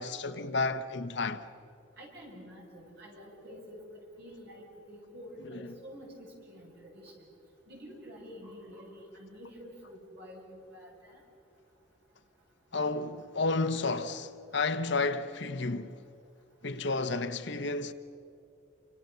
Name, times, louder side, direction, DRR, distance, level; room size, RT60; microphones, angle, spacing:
voice 1, 0.0-1.4 5.5-5.7 12.7-15.9 16.6-17.9, left 3 dB, 60° left, 1.1 m, -31 dB
voice 2, 2.0-3.8 4.2-7.1 7.7-11.2, equal, 50° right, 7.9 m, -48 dB
29.0 x 26.5 x 6.9 m
head